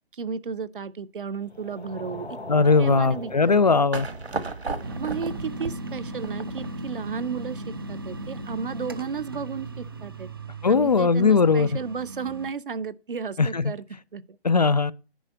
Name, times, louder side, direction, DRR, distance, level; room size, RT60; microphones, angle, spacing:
voice 1, 0.1-2.4 2.8-3.6 5.0-10.3 10.7-13.8 14.1-14.4, right 6 dB, 55° right, 0.7 m, -33 dB
sound 1, 1.4-10.2, left 1 dB, 90° left, 2.8 m, -44 dB
voice 2, 2.5-4.1 10.6-11.7 13.4-13.7 14.4-14.9, left 4 dB, 40° left, 0.4 m, -19 dB
sound 2, 3.9-6.9, right 3 dB, 80° right, 1.5 m, -34 dB
sound 3, 4.8-12.5, right 1 dB, 25° right, 0.5 m, -37 dB
10.0 x 4.8 x 6.8 m
figure-of-eight pair, 145°, 31 cm